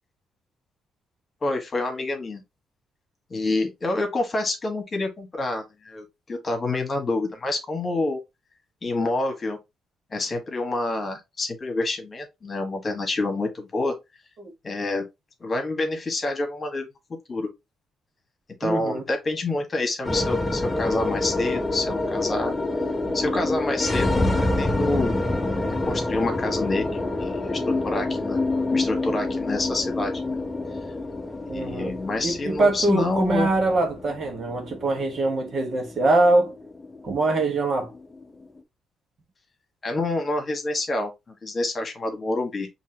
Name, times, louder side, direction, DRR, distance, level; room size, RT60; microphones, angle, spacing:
voice 1, 1.4-2.4 3.3-8.2 8.8-9.6 10.1-13.9 14.6-15.0 15.4-16.9 17.3-17.5 18.6-22.5 23.1-25.1 25.9-28.4 28.7-30.4 31.5-33.5 39.8-42.7, left 2 dB, 35° left, 1.6 m, -27 dB
voice 2, 18.6-19.0 31.5-32.0 32.2-36.5 37.0-37.9, right 2 dB, 50° right, 1.3 m, -23 dB
sound 1, 20.0-38.4, left 2 dB, 15° left, 0.8 m, -27 dB
5.4 x 2.9 x 2.9 m
cardioid pair, 90°, 0 cm